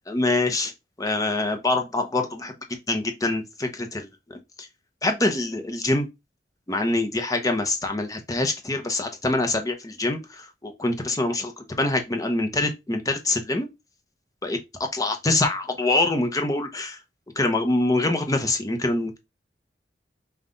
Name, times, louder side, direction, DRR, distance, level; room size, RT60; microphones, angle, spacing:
voice 1, 0.1-0.7 1.0-4.7 5.0-6.1 6.7-13.7 14.4-17.0 17.4-19.2, left 2 dB, 20° left, 0.7 m, -25 dB
5.5 x 2.4 x 3.8 m
head